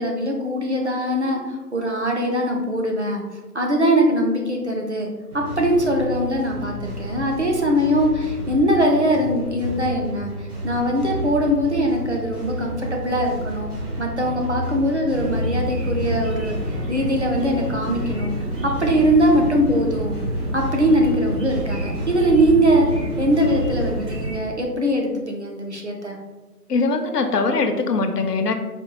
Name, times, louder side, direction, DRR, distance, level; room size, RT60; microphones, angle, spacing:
voice 1, 0.0-3.2 3.5-5.1 5.3-16.6 16.9-18.3 18.6-20.2 20.5-22.9 23.2-26.2, equal, 50° right, 0 dB, 0.5 m, -21 dB
sound 1, 5.3-24.1, equal, 65° right, 1.1 m, -31 dB
sound 2, 15.1-24.4, right 1 dB, 85° right, 1.0 m, -29 dB
voice 2, 26.7-28.5, left 3 dB, 75° left, 7 dB, 0.6 m, -21 dB
4.2 x 2.2 x 2.9 m, 1.2 s
figure-of-eight pair, 155°, 48 cm